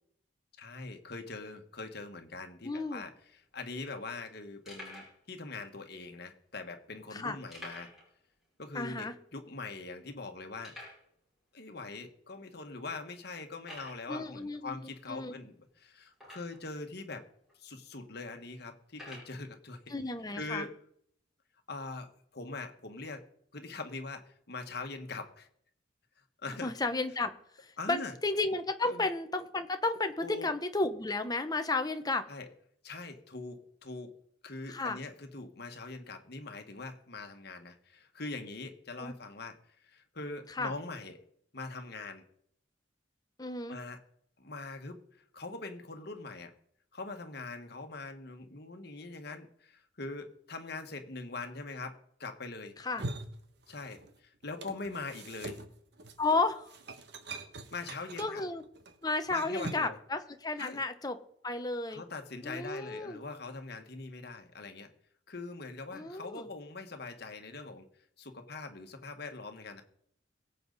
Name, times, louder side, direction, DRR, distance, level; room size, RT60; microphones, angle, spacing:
voice 1, 0.6-7.9 8.6-10.7 11.5-17.2 17.6-19.9 20.3-20.7 21.7-23.3 23.5-25.5 26.4-26.7 27.8-28.1 28.8-29.1 30.2-30.5 32.3-32.5 32.8-34.2 34.4-41.2 41.5-42.2 43.7-44.0 44.4-46.5 46.9-52.7 53.7-55.6 57.7-58.4 59.3-60.0 60.6-60.8 61.9-64.9 65.3-67.9 68.2-69.8, left 3 dB, 60° left, 6 dB, 1.6 m, -42 dB
voice 2, 2.6-3.0 7.1-7.4 8.7-9.1 14.1-15.3 19.9-20.7 26.6-27.3 27.6-32.2 34.7-35.0 39.0-39.1 40.5-40.7 43.4-43.8 52.8-53.1 56.2-56.7 58.2-58.6 59.0-61.2 61.4-62.0 62.4-63.2 65.9-66.5, left 3 dB, 20° left, 8 dB, 0.9 m, -33 dB
sound 1, 3.5-3.6 4.1-4.2 4.7-5.2 5.9-6.0 7.5-8.1 8.4-8.5 8.9-9.0 9.6-9.7 10.6-11.1 11.9-12.0 12.5-12.6 13.6-14.1 16.1-16.7 17.5-17.6 18.9-19.3, left 1 dB, ahead, 5.5 m, -48 dB
sound 2, 52.8-54.2 54.4-60.0, right 2 dB, 60° right, 1.1 m, -44 dB
23.0 x 8.0 x 4.1 m, 0.69 s
head